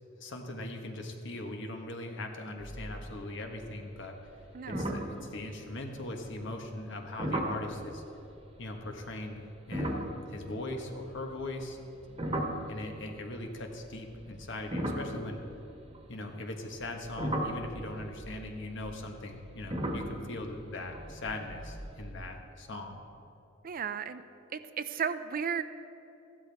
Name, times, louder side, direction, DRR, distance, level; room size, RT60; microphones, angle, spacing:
voice 1, 0.2-4.2 4.7-8.0 8.6-11.8 12.7-15.4 16.1-23.0, left 2 dB, 65° left, 3 dB, 1.3 m, -40 dB
sound 1, 2.6-3.2 3.5-3.9 4.3-4.4 4.7-6.0 7.2-7.7 9.6-13.2 13.9-16.2 16.8-22.1, right 1 dB, 30° right, 1.3 m, -37 dB
voice 2, 4.5-5.0 12.3-12.6 23.6-24.2 24.5-25.6, right 7 dB, 45° right, 11 dB, 0.5 m, -35 dB
15.0 x 12.5 x 3.5 m, 2.9 s
head